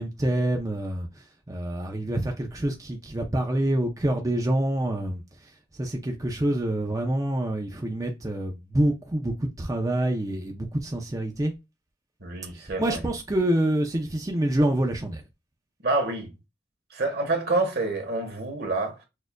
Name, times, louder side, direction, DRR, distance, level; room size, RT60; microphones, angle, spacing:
voice 1, 0.0-11.5 12.5-15.2, right 1 dB, 20° right, 0.5 m, -27 dB
voice 2, 12.2-13.0 15.8-16.3 16.9-19.0, right 2 dB, 60° right, 1.3 m, -27 dB
6.3 x 2.5 x 2.2 m
head